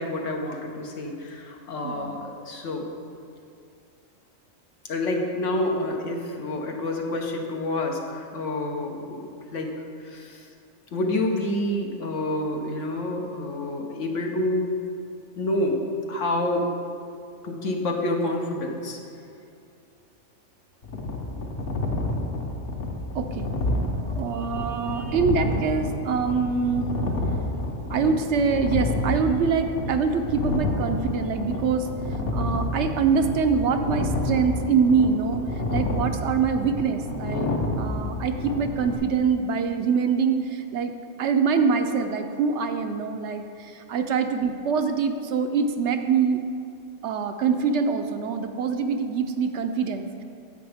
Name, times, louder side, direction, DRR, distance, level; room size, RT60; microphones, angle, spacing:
voice 1, 0.0-2.9 4.8-10.5 10.9-14.8 15.4-15.8 16.1-16.7 17.4-19.0, left 1 dB, 75° left, 1 dB, 1.3 m, -28 dB
voice 2, 1.8-2.3 23.1-23.5 24.1-26.9 27.9-31.9 32.3-35.4 35.7-40.9 41.2-46.4 47.0-50.2, right 5 dB, 70° right, 7 dB, 0.8 m, -24 dB
sound 1, 20.8-39.0, left 2 dB, 50° left, 1.1 m, -29 dB
10.0 x 7.8 x 3.5 m, 2.5 s
omnidirectional pair, 1.3 m